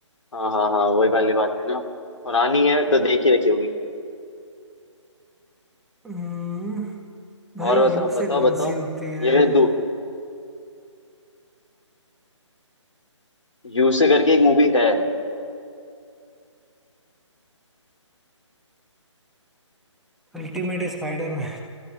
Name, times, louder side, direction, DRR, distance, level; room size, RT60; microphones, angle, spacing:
voice 1, 0.3-1.8 2.2-3.7 7.6-8.7 9.2-9.7 13.6-15.0, left 2 dB, 75° left, 4 dB, 3.0 m, -19 dB
voice 2, 6.0-6.9 7.5-9.6 20.3-21.6, right 1 dB, ahead, -1 dB, 1.4 m, -29 dB
29.5 x 15.0 x 8.7 m, 2.5 s
figure-of-eight pair, 150°, 16 cm